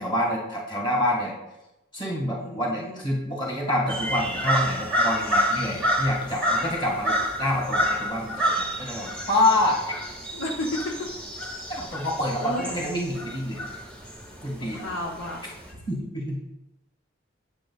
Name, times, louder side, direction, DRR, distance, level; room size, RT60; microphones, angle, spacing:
voice 1, 0.0-1.3 1.9-9.8 11.7-13.8 14.4-14.8 15.9-16.4, left 1 dB, 25° left, -3 dB, 1.8 m, -27 dB
voice 2, 2.4-3.0 10.3-11.0 12.4-12.7 14.6-15.4 15.7-15.9, left 1 dB, 70° left, -1 dB, 0.9 m, -32 dB
sound 1, 3.9-15.7, equal, 5° left, 1.1 m, -29 dB
8.3 x 7.8 x 2.4 m, 0.95 s
head